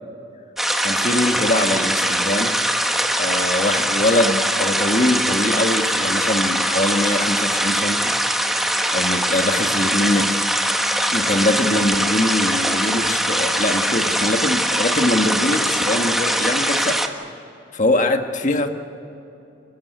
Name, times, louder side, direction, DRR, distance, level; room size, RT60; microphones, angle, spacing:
sound 1, 0.6-17.1, equal, ahead, 1.4 m, -21 dB
voice 1, 0.8-2.6 3.2-8.5 8.9-10.4 11.1-17.0 17.7-18.7, left 1 dB, 40° left, 6 dB, 1.7 m, -22 dB
28.5 x 15.0 x 9.4 m, 2.9 s
head